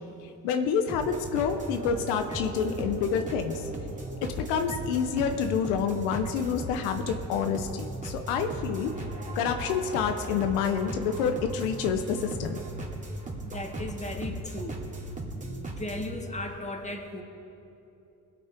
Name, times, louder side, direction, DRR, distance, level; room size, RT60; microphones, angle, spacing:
voice 1, 0.2-3.7 4.2-8.9 9.3-12.6, left 7 dB, 85° left, 7 dB, 0.8 m, -28 dB
sound 1, 0.9-16.1, right 2 dB, 20° right, 2.7 m, -37 dB
voice 2, 13.5-14.8 15.2-17.2, left 2 dB, 20° left, 3 dB, 1.9 m, -37 dB
21.0 x 8.2 x 4.4 m, 2.9 s
supercardioid pair, 60°, 38 cm